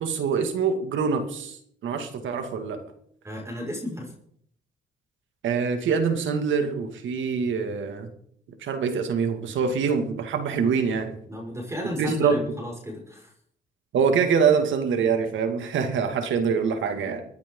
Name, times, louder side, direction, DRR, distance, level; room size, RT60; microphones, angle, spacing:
voice 1, 0.0-2.9 5.4-8.1 8.6-11.1 12.0-12.4 13.9-17.2, right 6 dB, 75° right, 7 dB, 2.3 m, -25 dB
voice 2, 3.2-4.1 11.3-13.3, left 1 dB, 15° right, 0 dB, 5.9 m, -33 dB
25.0 x 10.0 x 3.9 m, 0.65 s
cardioid pair, 90°, 20 cm